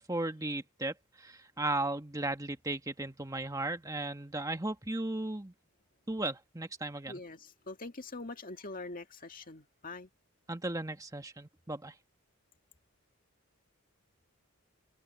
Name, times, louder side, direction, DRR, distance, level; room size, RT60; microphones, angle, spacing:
voice 1, 0.0-5.5 6.1-7.2 10.5-11.9, right 2 dB, 15° right, 1.5 m, -36 dB
voice 2, 7.1-10.1, left 2 dB, 40° left, 2.1 m, -44 dB
head